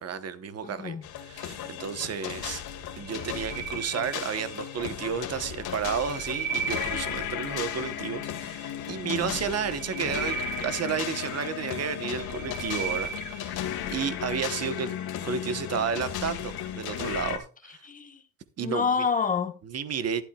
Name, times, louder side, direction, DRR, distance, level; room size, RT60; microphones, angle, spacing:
voice 1, 0.0-1.0 1.2-2.6 3.0-14.9 15.2-17.8 18.6-18.9 19.6-20.2, right 7 dB, 40° right, 1.1 m, -32 dB
voice 2, 0.6-1.0 9.0-9.4 17.8-18.2 18.6-19.5, left 5 dB, 20° left, 1.3 m, -28 dB
sound 1, 1.0-17.4, left 10 dB, 80° left, 2.0 m, -35 dB
sound 2, 3.0-4.7 5.6-7.5 9.4-11.5 12.0-13.6, right 7 dB, 20° right, 2.1 m, -36 dB
12.0 x 11.5 x 2.3 m
cardioid pair, 145°, 37 cm